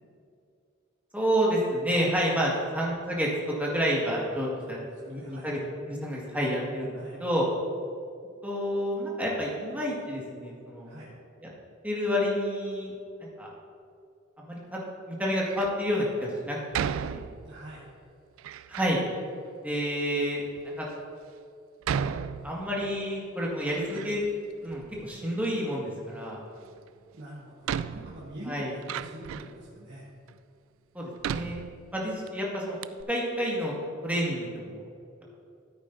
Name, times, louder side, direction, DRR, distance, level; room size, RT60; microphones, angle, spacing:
voice 1, 1.1-3.3 3.6-4.8 5.1-5.6 5.9-6.9 7.2-7.4 8.4-11.0 11.8-12.9 13.2-13.5 14.4-14.8 15.1-16.6 17.0-17.2 18.7-19.0 19.6-20.4 20.8-20.9 21.9-22.0 22.4-24.2 24.6-26.4 28.5-28.7 30.9-31.6 31.9-32.8 33.1-33.7 34.0-34.8, equal, 10° right, -4 dB, 1.8 m, -29 dB
voice 2, 4.6-5.5 6.9-7.2 10.8-11.1 17.4-17.9 27.1-30.0, right 1 dB, 60° right, -7 dB, 1.6 m, -45 dB
Door, 15.4-15.8 16.7-17.7 18.4-19.0 19.8-19.9 20.6-20.7 21.8-23.0 23.3-24.4 24.7-25.5 26.9-27.0 27.6-29.6 30.3-30.4 31.2-32.3 32.5-32.6 32.8-33.0, right 7 dB, 85° right, 0.3 m, -35 dB
13.5 x 9.0 x 2.7 m, 2.4 s
head